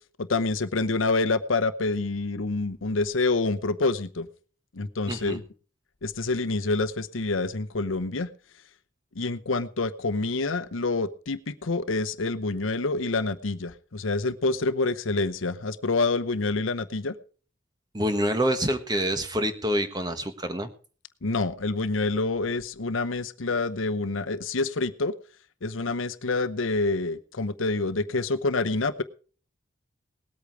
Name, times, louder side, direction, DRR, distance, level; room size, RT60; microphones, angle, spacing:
voice 1, 0.2-4.3 4.7-5.4 6.0-8.3 9.1-17.1 21.2-25.1 25.6-29.0, left 3 dB, 85° left, 11 dB, 0.9 m, -27 dB
voice 2, 5.1-5.4 17.9-20.7, equal, 20° right, 8 dB, 1.3 m, -26 dB
19.0 x 8.5 x 4.8 m, 0.39 s
head